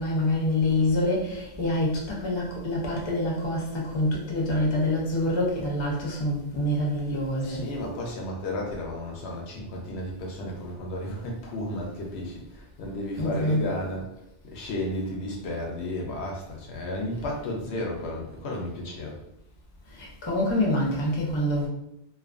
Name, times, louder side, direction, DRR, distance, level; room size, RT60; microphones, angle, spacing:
voice 1, 0.0-7.7 13.2-13.7 20.0-21.7, left 1 dB, 30° left, -3 dB, 0.6 m, -26 dB
voice 2, 7.4-14.1 14.4-19.2, left 1 dB, 75° left, -1 dB, 0.8 m, -33 dB
2.5 x 2.3 x 2.4 m, 0.83 s
omnidirectional pair, 1.2 m